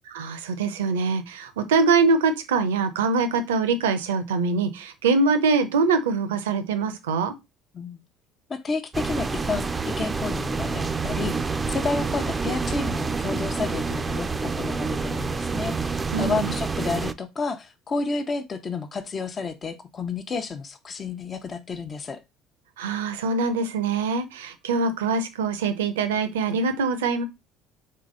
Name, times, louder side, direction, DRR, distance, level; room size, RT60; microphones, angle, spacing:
voice 1, 0.1-7.3 16.1-16.5 22.8-27.2, right 4 dB, 85° right, 0.6 m, -23 dB
voice 2, 8.5-22.2, left 4 dB, 40° left, 0.7 m, -31 dB
sound 1, 8.9-17.1, right 4 dB, 25° right, 0.4 m, -28 dB
3.8 x 3.3 x 3.8 m
hypercardioid pair, 65°, 0 cm